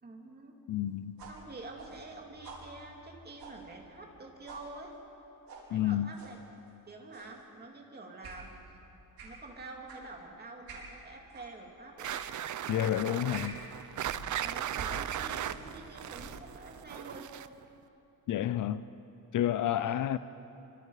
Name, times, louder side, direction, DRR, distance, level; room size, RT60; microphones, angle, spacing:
voice 1, 0.0-0.6 1.3-5.0 5.7-6.4 6.9-8.6 9.2-12.1 14.4-17.3 19.7-20.0, right 2 dB, 25° right, 1 dB, 2.5 m, -47 dB
voice 2, 0.7-1.2 5.7-6.1 12.7-13.6 18.3-18.8 19.3-20.2, left 11 dB, 60° left, 14 dB, 0.5 m, -30 dB
sound 1, 1.2-4.2 4.5-4.7 5.5-5.7 6.1-6.4 7.1-7.4 8.2-8.4 9.2-9.4 9.9-10.1 10.7-10.9 11.3-11.5 12.0-12.3 12.7-12.8 13.3-13.6 14.0-15.8 16.1-16.5, right 3 dB, 80° right, 4.9 m, -47 dB
sound 2, 12.0-17.6, right 11 dB, 55° right, 0.6 m, -37 dB
25.5 x 25.0 x 4.9 m, 2.9 s
wide cardioid pair, 180°, 36 cm